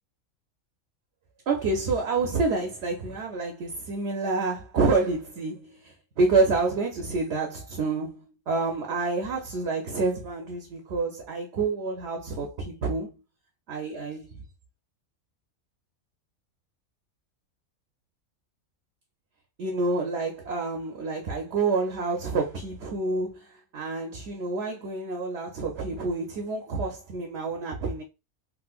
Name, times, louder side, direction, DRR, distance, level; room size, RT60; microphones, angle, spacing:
voice 1, 1.5-13.2 13.7-14.3 19.6-23.5 23.7-28.0, right 3 dB, 60° right, 0.8 m, -28 dB
3.8 x 2.5 x 2.3 m
omnidirectional pair, 1.5 m